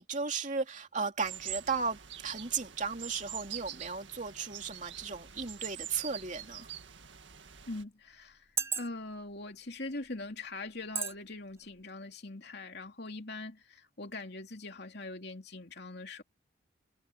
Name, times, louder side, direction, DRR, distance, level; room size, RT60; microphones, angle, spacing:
voice 1, 0.0-6.7, right 5 dB, 40° right, 2.8 m, -35 dB
sound 1, 1.2-7.8, right 10 dB, 75° right, 1.9 m, -45 dB
sound 2, 6.5-6.6 7.4-7.5 8.3-9.2 9.9-10.1 11.0-11.2 11.6-11.7, right 6 dB, 15° right, 0.4 m, -34 dB
voice 2, 7.7-8.5 8.8-16.2, left 2 dB, 60° left, 3.0 m, -42 dB
head